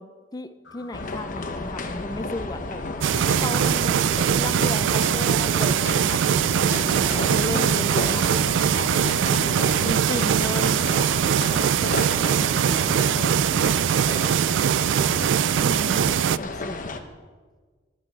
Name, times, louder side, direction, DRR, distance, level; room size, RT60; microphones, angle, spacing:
voice 1, 0.0-2.8 3.4-4.1 4.3-8.7 9.8-10.7 15.6-16.8, left 2 dB, 20° left, 11 dB, 0.6 m, -34 dB
sound 1, 0.6-14.2, left 3 dB, 70° left, 1.3 m, -48 dB
sound 2, 0.9-17.0, left 2 dB, 45° left, 0.9 m, -33 dB
sound 3, 3.0-16.4, right 8 dB, 70° right, 0.3 m, -22 dB
voice 2, 3.7-4.3 9.3-11.0, right 2 dB, 90° right, 10 dB, 0.9 m, -43 dB
12.0 x 9.8 x 6.3 m, 1.4 s
head